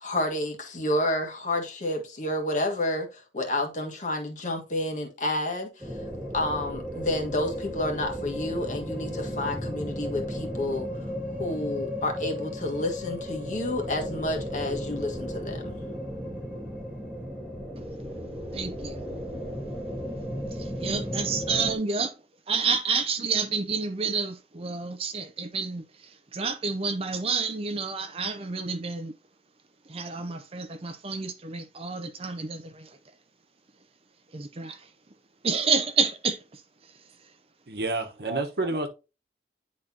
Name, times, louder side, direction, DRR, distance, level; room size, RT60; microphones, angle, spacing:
voice 1, 0.0-5.9 6.3-11.1 11.4-15.8, left 1 dB, 45° left, 1.6 m, -30 dB
sound 1, 5.8-21.8, equal, 10° right, 1.7 m, -35 dB
voice 2, 18.5-19.1 20.6-22.1 22.5-29.1 29.9-32.9 34.3-34.9 35.4-36.6 38.3-38.4, right 5 dB, 35° right, 0.6 m, -29 dB
voice 3, 37.7-38.9, right 2 dB, 65° right, 1.1 m, -29 dB
9.9 x 4.3 x 2.8 m
head